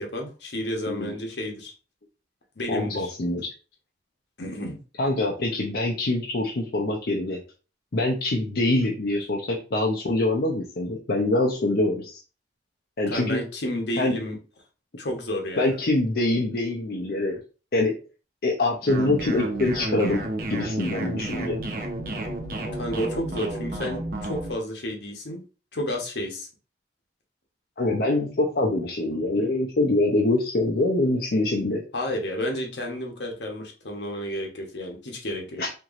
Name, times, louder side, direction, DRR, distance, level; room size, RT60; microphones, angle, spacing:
voice 1, 0.0-1.7 2.6-3.1 4.4-4.8 13.1-14.4 15.0-15.8 22.7-25.4 25.7-26.5 31.9-35.6, left 1 dB, 75° left, 1 dB, 1.1 m, -31 dB
voice 2, 0.9-1.2 2.7-3.5 5.0-7.4 7.9-12.2 13.0-13.4 14.0-14.1 15.6-17.4 17.7-17.9 18.4-20.2 20.5-21.6 27.8-31.8 35.6-35.7, left 2 dB, 60° left, -1 dB, 0.6 m, -24 dB
sound 1, 18.9-24.5, right 1 dB, 50° right, 0.8 m, -31 dB
4.4 x 2.9 x 2.5 m, 0.35 s
head